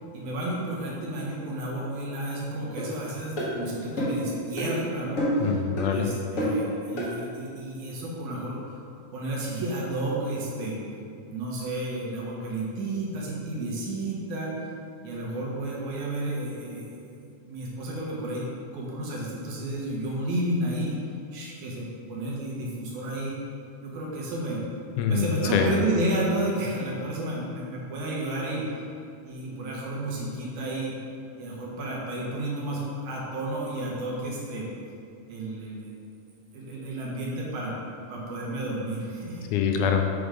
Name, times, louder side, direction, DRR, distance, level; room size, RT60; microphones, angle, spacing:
voice 1, 0.1-5.6 5.9-8.8 9.1-10.8 11.3-14.6 15.0-17.1 17.5-18.5 18.7-21.0 21.3-23.4 23.8-24.6 25.1-28.7 29.3-30.9 31.4-34.7 35.3-35.9 36.5-37.7 38.1-39.5, right 1 dB, 75° right, -4 dB, 2.3 m, -31 dB
sound 1, 2.8-2.9 3.4-3.5 4.0-4.2 4.6-4.7 5.2-5.5 5.8-5.9 6.4-6.6 7.0-7.1, equal, 70° left, 0.7 m, -27 dB
voice 2, 5.4-6.1 25.0-25.8 39.5-40.1, left 7 dB, 85° left, 4 dB, 2.0 m, -25 dB
6.2 x 3.4 x 4.9 m, 2.4 s
omnidirectional pair, 3.5 m